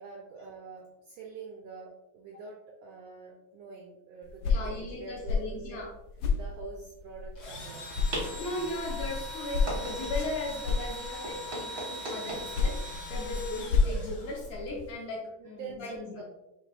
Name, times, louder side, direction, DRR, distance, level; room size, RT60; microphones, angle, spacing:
voice 1, 0.0-5.9 6.3-8.7 11.3-11.5 15.4-16.2, right 4 dB, 90° right, 0 dB, 1.4 m, -46 dB
sound 1, 4.2-7.6 7.9-11.5 12.3-14.9, left 4 dB, 90° left, 1.5 m, -32 dB
voice 2, 4.5-5.9 8.3-12.8 13.1-16.2, left 1 dB, 70° left, -2 dB, 1.8 m, -37 dB
Engine / Drill, 7.4-14.7, left 1 dB, 55° left, 1.4 m, -42 dB
sound 2, 7.4-14.9, right 1 dB, 55° right, 0.9 m, -42 dB
6.5 x 3.3 x 2.3 m, 0.93 s
omnidirectional pair, 3.6 m